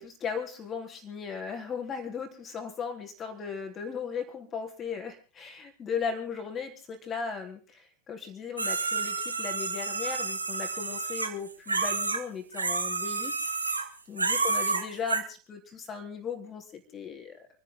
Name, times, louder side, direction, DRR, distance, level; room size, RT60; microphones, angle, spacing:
voice 1, 0.0-17.5, left 6 dB, 25° left, 4 dB, 3.6 m, -37 dB
sound 1, 8.6-12.2 12.5-13.9 14.2-15.2, right 4 dB, 80° right, 1.7 m, -30 dB
28.5 x 10.5 x 3.8 m, 0.37 s
figure-of-eight pair, 90°, 0 cm